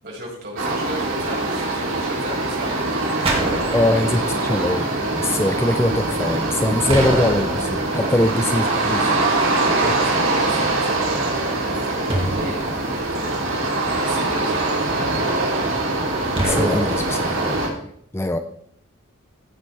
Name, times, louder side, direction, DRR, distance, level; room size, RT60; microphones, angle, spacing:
voice 1, 0.0-3.9 8.0-13.3 13.8-15.7, right 1 dB, 50° right, -3 dB, 5.8 m, -35 dB
sound 1, 0.6-17.7, right 2 dB, 75° right, 3.5 m, -23 dB
sound 2, 3.3-4.4 6.9-8.2 12.1-13.5 16.4-17.4, right 1 dB, 30° right, 2.2 m, -25 dB
voice 2, 3.7-4.9 5.1-9.1 16.4-17.8 18.1-18.4, left 1 dB, 10° left, 8 dB, 0.5 m, -22 dB
15.0 x 9.7 x 3.4 m, 0.66 s
head